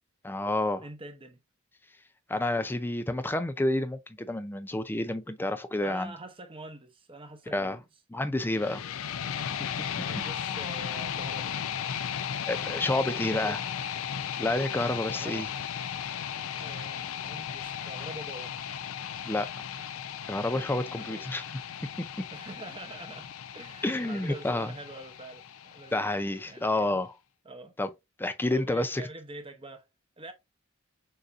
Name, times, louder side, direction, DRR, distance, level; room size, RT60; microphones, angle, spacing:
voice 1, 0.2-0.8 2.3-6.1 7.5-7.8 8.1-8.8 12.4-13.6 14.4-15.5 19.3-19.5 20.3-21.4 23.8-24.7 25.9-27.1 27.8-27.9 28.2-29.0, left 2 dB, 10° left, 0.4 m, -29 dB
voice 2, 0.8-1.4 5.8-7.8 10.0-11.6 13.1-13.6 15.1-15.5 16.6-18.7 20.8-21.2 22.3-26.1 26.5-27.0 27.4-27.7 28.5-29.9 30.2-30.3, right 1 dB, 25° right, 0.8 m, -45 dB
sound 1, 8.5-26.5, left 8 dB, 75° left, 0.4 m, -36 dB
6.5 x 2.5 x 2.5 m
head